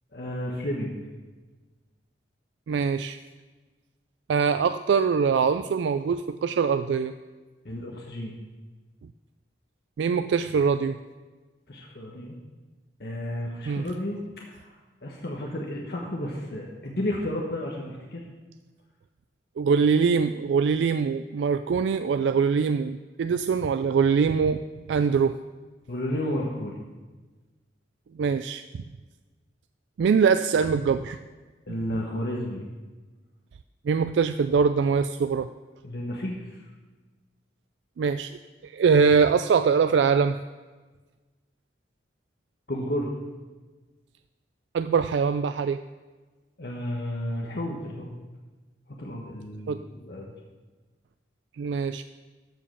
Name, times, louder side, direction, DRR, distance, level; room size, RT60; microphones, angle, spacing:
voice 1, 0.1-1.0 7.6-8.3 11.7-12.4 13.0-14.2 14.5-14.7 15.0-18.2 25.9-26.8 31.7-32.7 35.8-36.5 42.7-43.1 46.6-48.2 49.0-50.3, left 1 dB, 60° left, -1 dB, 1.1 m, -32 dB
voice 2, 2.7-3.2 4.3-7.1 10.0-11.0 13.7-13.9 19.6-25.4 28.1-28.8 30.0-31.2 33.8-35.5 38.0-40.4 44.7-45.8 49.7-49.8 51.6-52.0, right 5 dB, 85° right, 11 dB, 0.3 m, -23 dB
14.0 x 5.2 x 5.6 m, 1.3 s
head